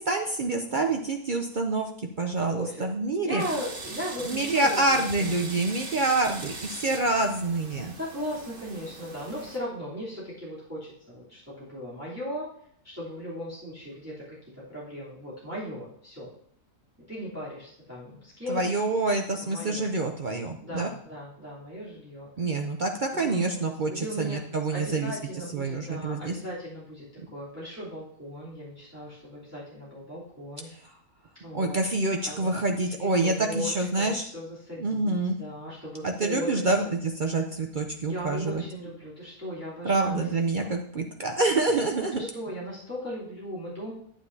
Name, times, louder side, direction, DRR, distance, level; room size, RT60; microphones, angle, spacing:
voice 1, 0.0-3.4 4.3-7.9 18.5-20.9 22.4-25.1 25.5-26.4 31.5-34.3 34.8-35.4 36.0-38.6 39.8-42.3, right 2 dB, 55° right, 3 dB, 0.5 m, -27 dB
voice 2, 0.7-1.0 2.5-2.8 3.2-5.4 8.0-12.5 12.8-16.3 17.1-18.6 19.4-19.9 20.6-22.3 23.1-23.6 23.9-24.4 24.7-27.0 27.3-30.7 31.4-31.8 32.2-32.5 33.0-36.9 38.1-40.3 40.5-40.7 42.3-43.9, equal, 10° right, -9 dB, 3.2 m, -37 dB
sound 1, 3.4-9.6, right 3 dB, 40° right, 1.3 m, -41 dB
9.6 x 8.9 x 2.8 m, 0.63 s
omnidirectional pair, 1.6 m